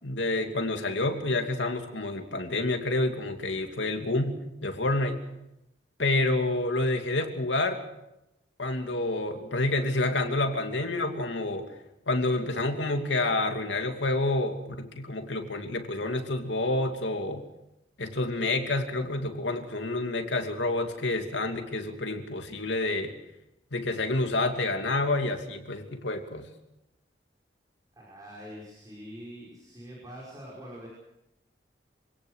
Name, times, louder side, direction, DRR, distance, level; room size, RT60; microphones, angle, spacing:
voice 1, 0.0-5.2 6.0-7.8 8.6-11.7 12.1-17.4 18.0-23.1 23.7-26.4, left 2 dB, 90° left, 5 dB, 2.7 m, -28 dB
voice 2, 28.0-30.9, equal, 20° right, -4 dB, 5.6 m, -44 dB
26.0 x 18.0 x 6.5 m, 0.89 s
head